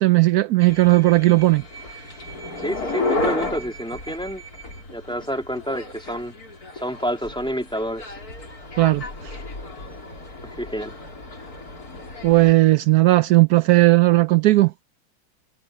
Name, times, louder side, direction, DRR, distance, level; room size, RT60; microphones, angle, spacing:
voice 1, 0.0-1.6 8.8-9.0 12.2-14.7, right 18 dB, 85° right, 0.8 m, -16 dB
sound 1, 0.6-12.5, left 2 dB, 45° left, 5.0 m, -33 dB
voice 2, 2.6-4.4 4.9-6.3 6.8-8.0 10.4-10.9, equal, ahead, 3.2 m, -28 dB
omnidirectional pair, 2.2 m